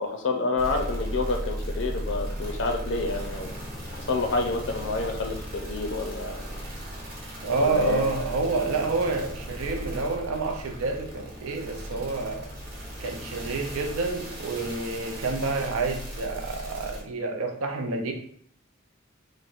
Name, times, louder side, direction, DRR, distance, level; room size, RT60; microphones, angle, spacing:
voice 1, 0.0-3.6 3.9-6.4 7.6-8.0, left 3 dB, 55° left, 3 dB, 0.5 m, -28 dB
sound 1, 0.6-17.0, equal, 45° right, 1.0 m, -36 dB
voice 2, 7.4-12.5 13.0-18.1, right 3 dB, 90° right, 4 dB, 0.5 m, -28 dB
4.1 x 2.1 x 2.4 m, 0.63 s
head